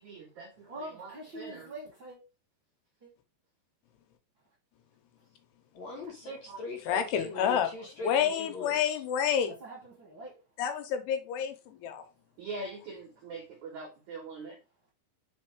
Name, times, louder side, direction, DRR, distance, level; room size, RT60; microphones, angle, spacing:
voice 1, 0.0-0.5 0.8-1.7 12.4-14.6, right 3 dB, 75° right, 1.7 m, -42 dB
voice 2, 0.7-2.2 3.0-3.1 9.4-10.3, right 1 dB, 45° right, 1.6 m, -44 dB
voice 3, 5.7-8.7, left 2 dB, 60° left, 1.9 m, -41 dB
voice 4, 6.9-7.7 8.0-9.5 10.6-12.0, left 8 dB, 80° left, 2.8 m, -29 dB
5.2 x 4.5 x 4.7 m
omnidirectional pair, 4.9 m